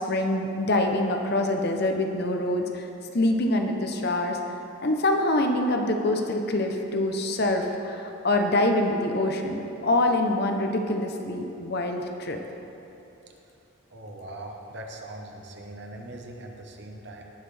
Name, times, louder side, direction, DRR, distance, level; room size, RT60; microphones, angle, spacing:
voice 1, 0.1-2.9 3.1-4.4 4.8-12.4, left 1 dB, 50° left, 4 dB, 0.8 m, -25 dB
voice 2, 13.9-17.2, right 1 dB, 55° right, 1 dB, 1.1 m, -41 dB
18.5 x 6.5 x 3.4 m, 2.9 s
head